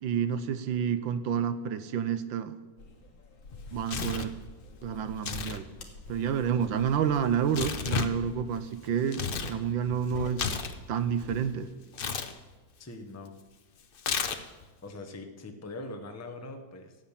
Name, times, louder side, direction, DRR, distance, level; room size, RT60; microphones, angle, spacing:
voice 1, 0.0-2.5 3.7-4.3 4.8-5.7 6.1-10.6 10.9-11.7, right 8 dB, 85° right, 1.5 m, -29 dB
sound 1, 2.8-8.4, left 2 dB, 90° left, 2.3 m, -50 dB
Tearing, 3.5-4.4 5.1-5.6 5.9-9.6 9.9-11.4 11.9-12.3 14.0-14.6, left 6 dB, 65° left, 0.5 m, -33 dB
voice 2, 12.8-13.3 14.8-17.0, left 2 dB, 15° left, 0.7 m, -42 dB
13.0 x 8.9 x 7.3 m
omnidirectional pair, 2.0 m